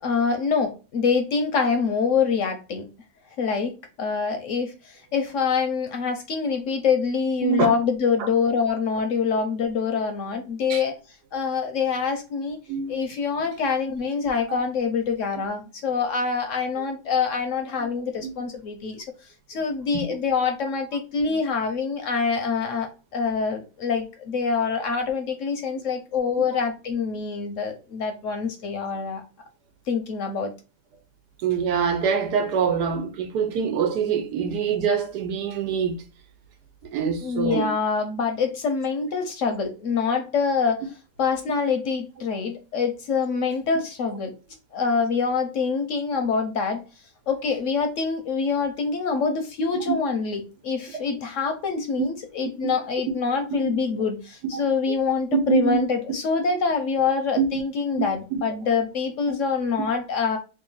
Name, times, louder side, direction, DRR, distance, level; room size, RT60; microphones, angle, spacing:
voice 1, 0.0-2.9 3.4-10.9 11.3-12.6 12.9-19.1 19.5-29.2 29.9-30.5 37.2-40.8 41.2-44.3 44.7-46.8 47.3-60.4, left 5 dB, 65° left, 0.9 m, -25 dB
voice 2, 31.4-36.0 36.9-37.7 53.6-54.1 54.5-54.6 55.3-55.8 57.4-57.6 58.3-58.4, right 7 dB, 85° right, 1.3 m, -24 dB
3.0 x 2.6 x 3.8 m
omnidirectional pair, 1.7 m